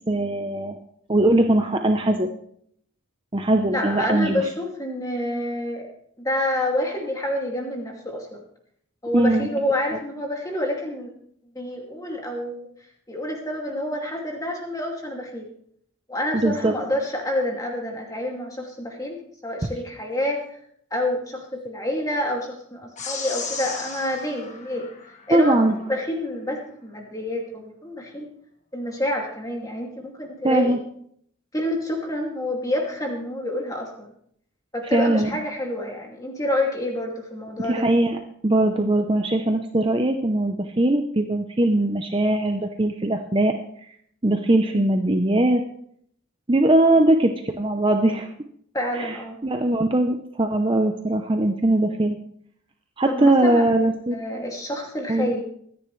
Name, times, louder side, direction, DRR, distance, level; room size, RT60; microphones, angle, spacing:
voice 1, 0.1-0.8 1.1-2.3 3.3-4.4 9.1-9.5 16.3-16.7 25.3-25.8 30.4-30.8 34.9-35.3 37.6-43.5 44.2-45.6 46.5-48.3 48.9-49.2 49.4-52.2 53.0-54.2 55.1-55.3, right 1 dB, 25° right, 5 dB, 0.7 m, -20 dB
voice 2, 3.7-5.9 6.2-8.4 9.0-11.1 11.5-12.7 13.1-15.4 16.1-20.6 20.9-24.9 25.3-25.6 25.9-28.3 28.7-30.8 31.5-34.1 34.7-37.9 46.9-47.0 48.7-49.4 53.1-53.7 54.1-55.4, left 1 dB, 15° left, 0 dB, 2.4 m, -28 dB
sound 1, 23.0-25.6, left 5 dB, 35° left, 1.6 m, -35 dB
23.5 x 10.0 x 3.2 m, 0.66 s
head